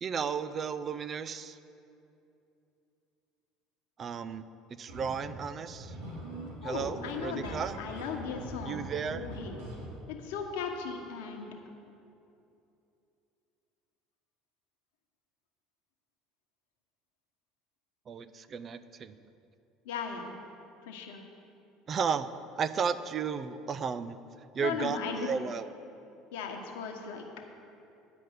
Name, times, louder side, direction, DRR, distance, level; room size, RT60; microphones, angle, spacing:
voice 1, 0.0-1.6 4.0-4.4 4.8-5.9 6.6-7.8 8.6-9.3 18.1-19.2 21.9-22.3 22.6-24.2 24.5-25.7, right 6 dB, 40° right, 14 dB, 0.4 m, -34 dB
sound 1, 4.9-10.0, right 1 dB, 80° right, 2.1 m, -43 dB
voice 2, 6.6-8.9 9.1-9.6 10.1-11.5 19.8-20.3 20.8-21.2 24.6-25.4 26.3-27.2, left 6 dB, 75° left, 2 dB, 1.1 m, -37 dB
9.4 x 5.2 x 8.0 m, 2.7 s
hypercardioid pair, 75°, 0 cm